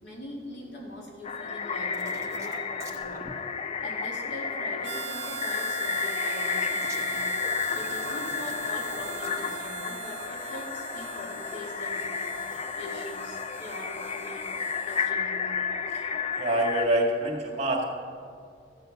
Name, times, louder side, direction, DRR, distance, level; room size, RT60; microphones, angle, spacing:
voice 1, 0.0-3.2 3.8-7.2 7.7-12.2 12.8-15.6, left 1 dB, 75° left, -2 dB, 2.7 m, -42 dB
sound 1, 1.2-16.9, left 6 dB, 35° left, 0.4 m, -32 dB
sound 2, 1.9-3.3 6.8-9.8 12.3-12.6, right 3 dB, 15° right, 1.1 m, -46 dB
Harmonica, 4.8-15.1, right 8 dB, 75° right, 0.7 m, -40 dB
voice 2, 16.3-17.8, right 1 dB, 40° right, 1 dB, 1.7 m, -25 dB
13.5 x 7.9 x 5.7 m, 2.3 s
head